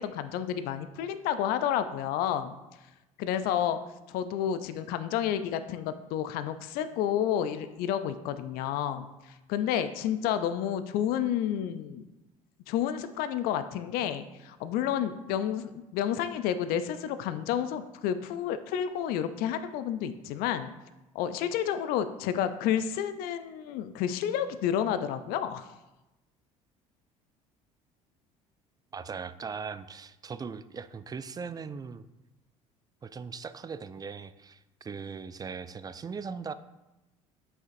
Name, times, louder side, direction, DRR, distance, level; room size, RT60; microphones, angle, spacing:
voice 1, 0.0-2.5 3.2-3.8 4.1-9.1 9.5-12.0 12.7-20.7 21.1-25.7, left 9 dB, 60° left, 11 dB, 0.5 m, -30 dB
voice 2, 28.9-32.0 33.0-36.5, right 5 dB, 20° right, 14 dB, 0.4 m, -39 dB
7.9 x 5.9 x 2.6 m, 1.0 s
hypercardioid pair, 60°, 17 cm